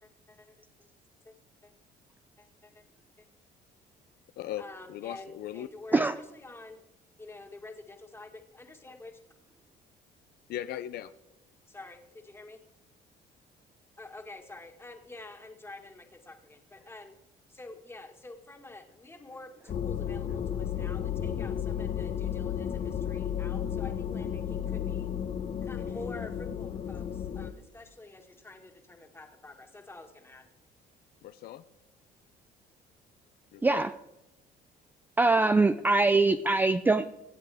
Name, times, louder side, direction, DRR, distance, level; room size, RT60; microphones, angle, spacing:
voice 1, 0.0-0.5 1.3-1.4 1.6-1.7 2.6-2.8 4.6-6.8 7.2-9.1 11.7-12.6 14.0-17.1 17.5-25.1 25.6-30.4, left 2 dB, 15° left, 4 dB, 1.9 m, -48 dB
voice 2, 4.4-5.7 5.9-6.0 10.5-11.1 31.2-31.6 33.5-33.8, left 12 dB, 70° left, 13 dB, 0.6 m, -38 dB
sound 1, 19.7-27.5, left 9 dB, 45° left, 1.0 m, -33 dB
voice 3, 33.6-33.9 35.2-37.1, right 3 dB, 10° right, 11 dB, 0.4 m, -23 dB
23.5 x 8.2 x 3.5 m, 0.96 s
cardioid pair, 110°, 17 cm